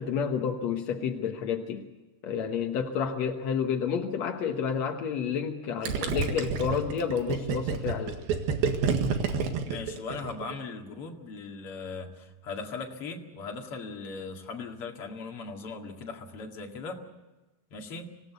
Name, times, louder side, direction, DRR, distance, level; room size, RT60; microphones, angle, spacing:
voice 1, 0.0-1.9 2.2-8.2, left 7 dB, 70° left, 3 dB, 1.6 m, -30 dB
Gurgling, 5.8-10.5, right 5 dB, 65° right, 3.4 m, -28 dB
voice 2, 9.3-17.0 17.7-18.1, left 4 dB, 40° left, 2 dB, 2.4 m, -39 dB
25.5 x 18.0 x 8.2 m, 1.1 s
omnidirectional pair, 4.9 m